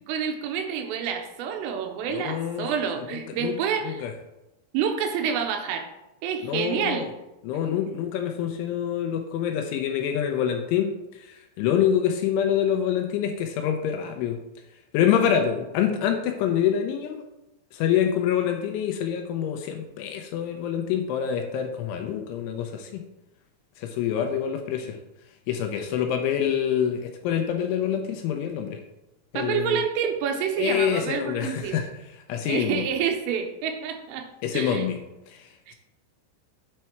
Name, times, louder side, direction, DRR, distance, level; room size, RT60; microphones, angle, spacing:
voice 1, 0.1-4.1 4.7-5.9 6.2-7.1 29.4-31.8 32.4-34.3 34.5-34.9 35.7-35.8, right 7 dB, 80° right, 5 dB, 3.3 m, -28 dB
voice 2, 2.1-2.7 3.1-3.6 3.8-4.1 6.4-7.1 7.4-14.4 14.9-17.2 17.7-23.1 23.8-25.0 25.5-28.8 29.3-29.8 30.6-32.9 34.4-35.8, left 9 dB, 80° left, 5 dB, 2.9 m, -26 dB
9.5 x 4.4 x 4.5 m, 0.93 s
omnidirectional pair, 5.9 m